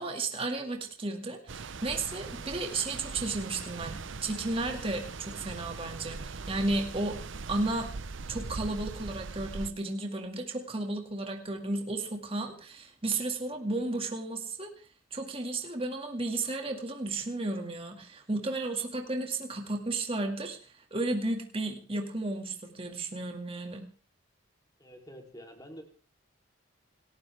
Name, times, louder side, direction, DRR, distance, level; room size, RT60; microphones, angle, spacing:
voice 1, 0.0-7.2 7.5-7.9 8.3-14.7 15.1-23.9, right 2 dB, 25° right, 3 dB, 2.1 m, -33 dB
sound 1, 1.5-9.7, right 4 dB, 65° right, 0.7 m, -40 dB
voice 2, 24.8-25.8, equal, 20° left, 3 dB, 3.2 m, -47 dB
27.5 x 12.5 x 3.4 m, 0.36 s
head